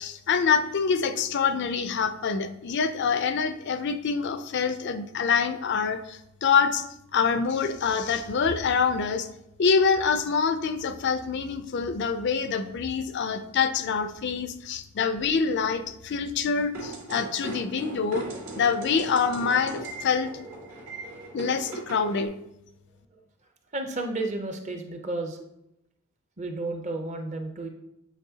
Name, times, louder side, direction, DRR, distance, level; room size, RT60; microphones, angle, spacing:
voice 1, 0.0-6.9 7.1-9.3 9.6-18.3 18.5-20.3 21.3-22.3, left 5 dB, 50° left, 9 dB, 0.4 m, -26 dB
sound 1, 16.7-22.3, right 2 dB, 90° right, 2.3 m, -39 dB
voice 2, 23.7-25.5 26.4-27.7, right 2 dB, 30° right, 5 dB, 0.6 m, -32 dB
8.0 x 4.2 x 2.8 m, 0.84 s
head